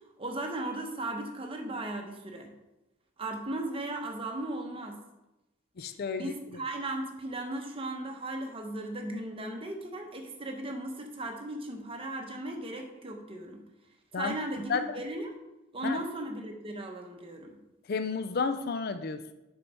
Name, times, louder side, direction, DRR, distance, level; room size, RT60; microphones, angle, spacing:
voice 1, 0.2-2.5 3.2-5.0 6.2-13.6 14.1-15.3 15.7-17.6, right 1 dB, 25° right, 3 dB, 0.9 m, -36 dB
voice 2, 5.8-6.3 14.1-14.4 14.7-15.0 15.8-16.0 17.9-19.3, left 5 dB, 50° left, 9 dB, 0.4 m, -31 dB
6.5 x 4.5 x 5.4 m, 0.99 s
head